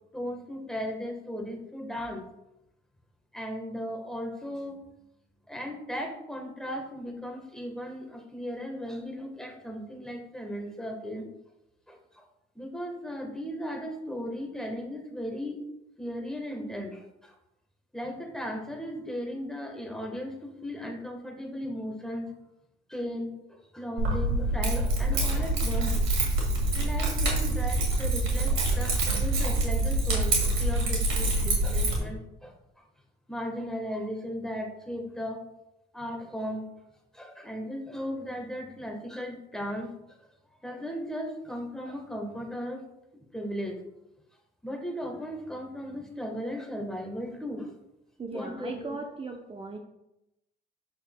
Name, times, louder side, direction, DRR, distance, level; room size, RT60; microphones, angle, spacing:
voice 1, 0.1-2.2 3.3-4.8 5.5-11.3 11.9-12.2 12.5-15.6 16.0-17.3 17.9-22.4 22.9-26.0 26.7-32.5 33.3-35.5 35.9-36.7 37.1-39.9 40.6-42.8 43.3-43.8 44.6-47.7 48.3-49.0, equal, 5° left, 2 dB, 1.3 m, -36 dB
Keys jangling, 24.0-32.0, right 2 dB, 85° right, 2.0 m, -26 dB
voice 2, 48.2-49.8, right 3 dB, 30° right, 3 dB, 0.6 m, -37 dB
7.9 x 6.5 x 2.2 m, 0.89 s
cardioid pair, 90°, 20 cm